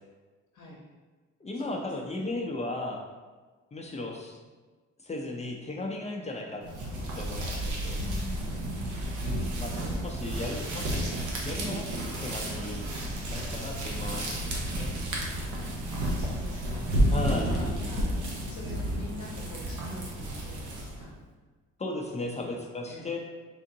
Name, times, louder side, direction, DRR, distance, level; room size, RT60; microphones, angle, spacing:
voice 1, 0.5-0.8 1.5-2.4 7.9-9.2 16.0-18.2 18.4-21.1 22.3-22.5 22.9-23.1, left 2 dB, 75° left, -3 dB, 0.8 m, -44 dB
voice 2, 1.4-3.0 3.7-4.4 5.0-6.6 7.2-8.0 9.2-9.7 10.0-11.1 11.4-11.9 12.2-12.9 13.3-14.9 17.1-17.5 21.8-23.2, left 2 dB, 20° left, 0 dB, 0.5 m, -36 dB
sound 1, 6.6-21.1, right 1 dB, 80° right, 0.9 m, -31 dB
3.7 x 3.5 x 2.7 m, 1.3 s
cardioid pair, 90°, 30 cm